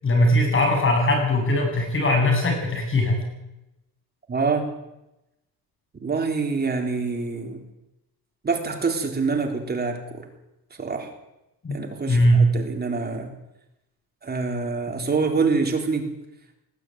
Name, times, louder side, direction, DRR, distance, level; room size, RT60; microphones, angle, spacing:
voice 1, 0.0-3.2 11.6-11.8 12.1-12.4, left 1 dB, 30° left, 2 dB, 8.0 m, -20 dB
voice 2, 4.3-4.7 6.0-7.6 8.4-10.3 10.8-11.1 11.7-13.3 14.2-16.1, right 4 dB, 25° right, 3 dB, 3.9 m, -26 dB
20.5 x 13.5 x 9.4 m, 0.92 s
cardioid pair, 130°, 38 cm